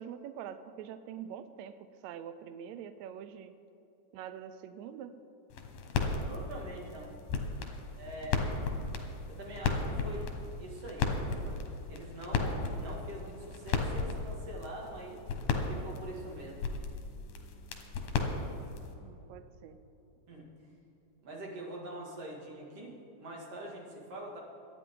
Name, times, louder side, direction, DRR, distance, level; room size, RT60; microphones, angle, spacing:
voice 1, 0.0-1.8 2.0-3.5 4.1-5.1 19.0-19.8, right 9 dB, 90° right, 11 dB, 1.6 m, -44 dB
sound 1, 5.5-18.9, left 4 dB, 85° left, 2.9 m, -35 dB
voice 2, 6.1-7.2 8.0-8.6 9.3-10.3 10.6-11.6 11.9-15.2 15.7-16.6 20.3-20.5 21.2-24.4, right 1 dB, 50° right, -2 dB, 3.1 m, -44 dB
24.0 x 9.2 x 3.8 m, 3.0 s
omnidirectional pair, 3.9 m